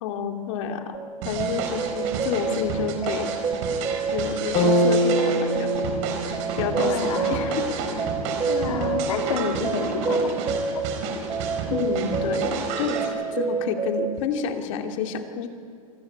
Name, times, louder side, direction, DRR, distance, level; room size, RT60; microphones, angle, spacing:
voice 1, 0.0-1.0 1.2-3.3 4.1-5.9 6.2-7.8 11.7-15.5, left 6 dB, 60° left, 5 dB, 2.6 m, -29 dB
sound 1, 0.9-14.2, right 5 dB, 20° right, 1.1 m, -29 dB
sound 2, 1.2-13.1, right 5 dB, 55° right, 4.2 m, -31 dB
sound 3, 4.6-8.6, equal, 35° left, 4.0 m, -26 dB
voice 2, 6.8-7.6 8.5-10.4 10.7-10.8, left 5 dB, 85° left, 3 dB, 3.6 m, -29 dB
26.0 x 14.0 x 9.7 m, 2.4 s
hypercardioid pair, 130°, 18 cm